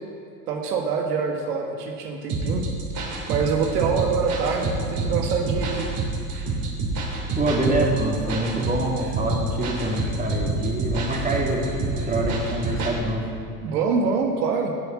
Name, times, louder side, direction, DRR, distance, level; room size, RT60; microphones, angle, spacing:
voice 1, 0.5-2.6 3.3-5.9 13.6-14.7, right 5 dB, 75° right, 2 dB, 1.7 m, -25 dB
sound 1, 2.3-13.0, right 3 dB, 45° right, 3.3 m, -28 dB
voice 2, 7.3-13.3, right 1 dB, 15° right, -1 dB, 2.7 m, -25 dB
12.5 x 8.1 x 7.2 m, 2.6 s
hypercardioid pair, 90°, 47 cm